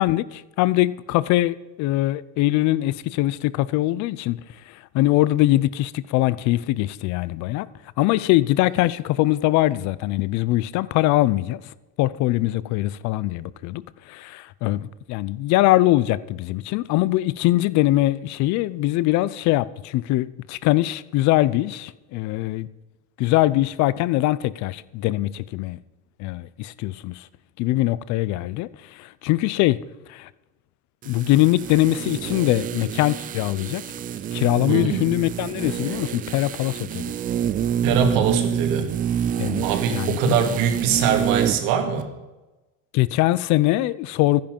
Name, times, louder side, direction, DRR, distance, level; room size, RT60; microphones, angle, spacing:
voice 1, 0.0-4.4 4.7-7.7 8.0-11.6 12.0-22.7 23.2-25.8 26.2-27.3 27.6-29.8 30.1-30.3 31.1-33.8 34.3-37.1 39.4-39.6 39.9-40.4 42.9-44.4, left 16 dB, 50° left, 0.6 m, -22 dB
sound 1, 31.0-41.7 42.0-42.1, right 9 dB, 25° right, 0.4 m, -27 dB
voice 2, 34.7-35.1 37.8-38.9 39.6-42.1, right 7 dB, 65° right, 2.3 m, -22 dB
14.0 x 10.5 x 5.3 m
cardioid pair, 160°, 36 cm